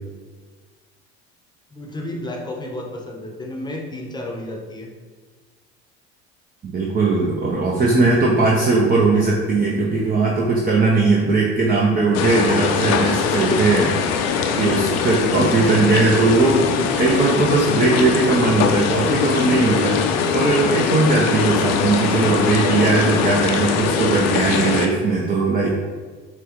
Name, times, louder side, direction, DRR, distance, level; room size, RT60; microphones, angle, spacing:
voice 1, 1.7-4.9 13.3-13.6, left 1 dB, 15° left, 0 dB, 0.9 m, -32 dB
voice 2, 6.6-13.9 14.6-16.7 17.0-20.0 20.3-25.7, right 3 dB, 30° right, -3 dB, 0.8 m, -19 dB
sound 1, 12.1-24.9, left 6 dB, 55° left, 0.6 m, -21 dB
5.9 x 2.3 x 3.1 m, 1.4 s
hypercardioid pair, 80°, 31 cm